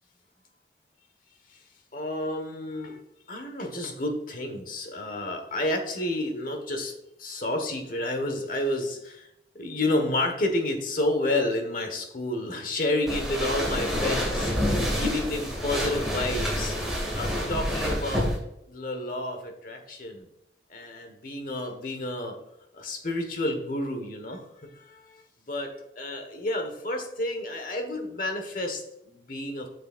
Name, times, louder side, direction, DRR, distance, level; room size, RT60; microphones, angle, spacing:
voice 1, 1.9-3.0 3.3-6.9 7.2-9.3 9.5-14.7 15.0-16.8 17.1-18.3 18.7-20.3 20.7-22.3 22.7-29.7, left 1 dB, 50° left, 5 dB, 1.3 m, -30 dB
sound 1, 13.1-18.4, equal, ahead, 2.1 m, -28 dB
8.1 x 6.6 x 2.5 m, 0.82 s
head